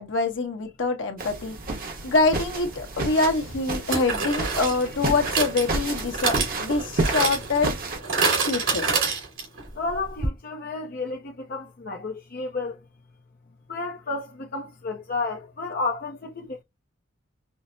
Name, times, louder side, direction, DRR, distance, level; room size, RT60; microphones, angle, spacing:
voice 1, 0.0-1.6 2.0-7.7 8.4-8.9, left 3 dB, 65° left, 1.1 m, -25 dB
sound 1, 1.2-8.0, right 2 dB, 45° right, 1.0 m, -31 dB
sound 2, 2.6-2.7 3.9-9.7 9.9-10.0 10.2-10.3, right 4 dB, 75° right, 2.3 m, -27 dB
voice 2, 9.7-12.8 13.7-16.6, left 3 dB, 45° left, 0.6 m, -31 dB
5.6 x 2.0 x 2.6 m
head